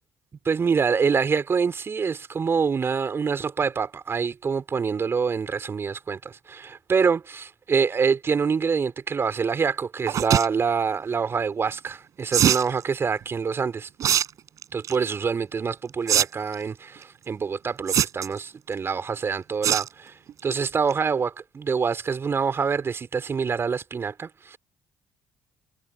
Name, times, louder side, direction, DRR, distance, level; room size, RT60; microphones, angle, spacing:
voice 1, 0.4-13.9 14.7-24.6, right 5 dB, 35° right, 4.0 m, -26 dB
sound 1, 10.1-10.5 12.3-12.7 14.0-14.2 14.6-14.9 16.1-16.2 16.5-16.6 17.9-18.4 19.6-19.9 20.3-20.5 20.9-21.0 21.2-21.3, right 10 dB, 55° right, 7.9 m, -21 dB
figure-of-eight pair, 50°, 7 cm